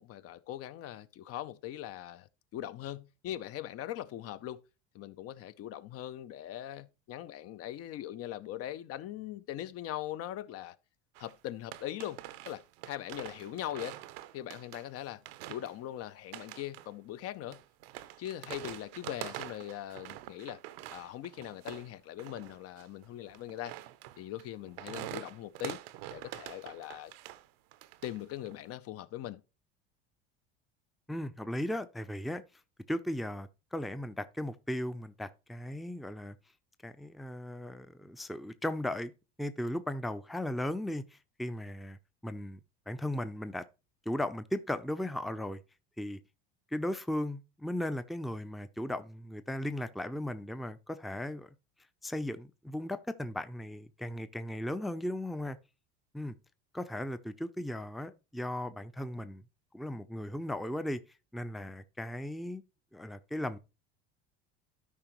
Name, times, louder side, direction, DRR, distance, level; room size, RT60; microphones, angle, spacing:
voice 1, 0.0-4.6 4.9-10.8 11.2-14.0 14.3-15.2 15.5-17.6 18.2-20.6 20.9-23.7 24.2-25.8 26.1-27.1 28.0-29.4, left 12 dB, 50° left, 0.6 m, -41 dB
sound 1, 11.1-11.3 11.7-15.0 15.3-15.8 16.3-16.9 17.5-21.9 22.2-27.5 27.7-28.6, right 14 dB, 80° right, 0.7 m, -45 dB
voice 2, 31.1-32.4 32.9-36.4 36.8-39.1 39.4-42.0 42.2-42.6 42.9-43.6 44.1-45.6 46.0-46.2 46.7-51.5 52.0-55.6 56.1-56.3 56.7-59.4 59.7-61.0 61.3-62.6 62.9-63.6, left 1 dB, ahead, 0.5 m, -36 dB
12.5 x 5.1 x 3.0 m
supercardioid pair, 90°, 30 cm